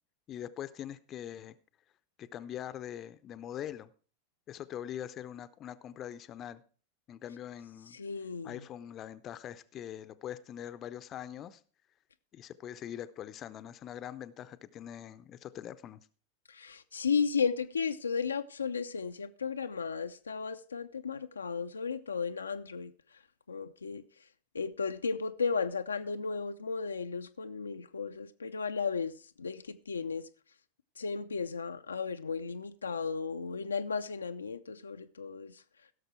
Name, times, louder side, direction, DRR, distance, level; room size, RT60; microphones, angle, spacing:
voice 1, 0.3-1.6 2.2-3.9 4.5-6.6 7.1-8.0 8.4-11.6 12.3-16.1, left 10 dB, 30° left, 0.6 m, -43 dB
voice 2, 7.9-8.6 16.5-22.9 23.5-24.0 24.5-30.3 31.0-35.6, left 5 dB, 75° left, 0.4 m, -34 dB
16.0 x 6.6 x 4.5 m
figure-of-eight pair, 90°, 0 cm